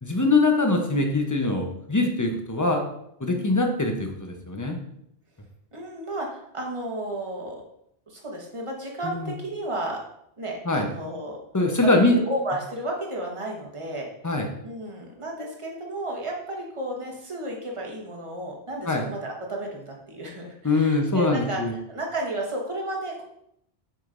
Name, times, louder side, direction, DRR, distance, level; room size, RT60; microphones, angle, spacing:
voice 1, 0.0-2.8 3.2-4.8 9.0-9.3 10.6-10.9 11.5-12.2 14.2-14.5 18.9-19.0 20.6-21.7, left 2 dB, 20° left, 3 dB, 0.7 m, -23 dB
voice 2, 5.7-7.6 8.1-10.0 10.4-11.4 11.8-14.4 14.6-21.6 21.9-23.2, right 1 dB, 30° right, -1 dB, 1.2 m, -33 dB
7.5 x 5.1 x 2.5 m, 0.75 s
omnidirectional pair, 1.1 m